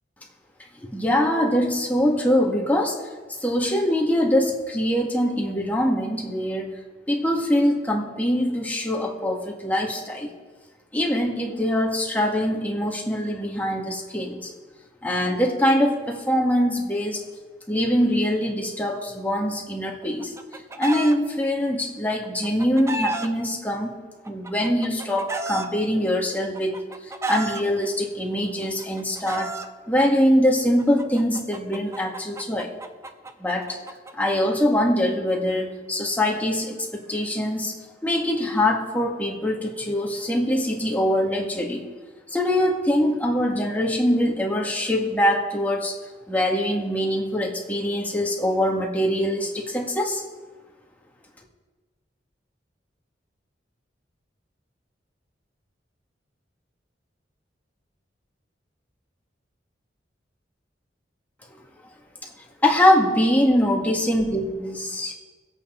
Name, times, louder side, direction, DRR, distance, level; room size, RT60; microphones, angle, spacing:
voice 1, 0.8-3.0 3.4-6.8 7.1-10.3 10.9-14.5 15.0-17.2 17.7-20.3 20.8-23.9 24.3-26.8 27.3-29.5 29.9-32.7 33.4-33.8 34.1-37.7 38.0-41.8 42.3-45.9 46.3-50.2 62.6-65.1, left 1 dB, 10° left, -1 dB, 1.9 m, -23 dB
Chicken rooster, 20.0-21.1 22.2-23.3 24.2-25.7 26.5-27.6 28.6-29.7 30.8-34.1, right 2 dB, 15° right, 0.7 m, -32 dB
23.0 x 8.4 x 3.9 m, 1.3 s
head